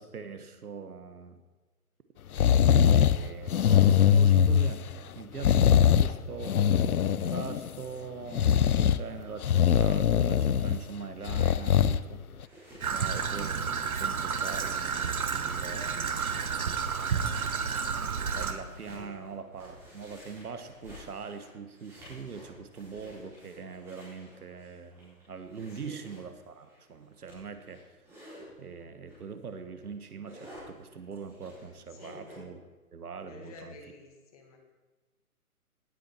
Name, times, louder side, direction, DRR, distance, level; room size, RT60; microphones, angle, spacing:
voice 1, 0.0-1.4 2.9-12.5 12.9-16.3 18.3-27.8 28.6-32.6 32.9-33.7, right 5 dB, 85° right, 9 dB, 1.5 m, -42 dB
sound 1, 2.4-3.2 3.5-4.9 5.4-6.1 6.4-7.8 8.3-9.0 9.4-10.8 11.3-12.0 12.4-12.5, left 8 dB, 75° left, 0.7 m, -22 dB
sound 2, 12.4-28.5 29.1-29.3 29.7-32.3, equal, 5° right, 4.4 m, -53 dB
Traffic noise roadway noise / Trickle dribble, 12.8-18.5, right 6 dB, 70° right, 1.3 m, -31 dB
voice 2, 18.9-19.3 25.8-26.1 31.9-32.2 33.3-34.6, left 3 dB, 25° left, 2 dB, 1.7 m, -50 dB
18.0 x 8.8 x 4.4 m, 1.3 s
hypercardioid pair, 165°, 44 cm